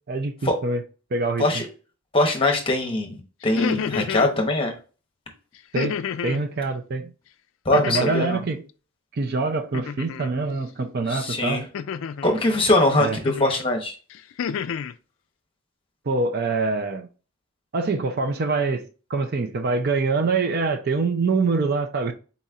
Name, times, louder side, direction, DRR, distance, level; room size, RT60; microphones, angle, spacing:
voice 1, 0.1-0.8 1.1-1.5 5.7-6.0 6.2-7.1 7.7-8.6 9.1-11.6 13.0-13.2 16.1-17.1 17.7-22.1, right 3 dB, 45° right, 0.5 m, -25 dB
voice 2, 2.1-4.7 7.6-8.4 11.1-11.7 12.2-13.9, left 2 dB, 25° left, 1.0 m, -22 dB
sound 1, 3.4-4.3 5.7-6.4 7.7-8.4 9.7-10.3 11.7-12.4 13.2-13.6 14.1-14.9, left 7 dB, 65° left, 0.3 m, -30 dB
4.1 x 4.1 x 2.4 m
head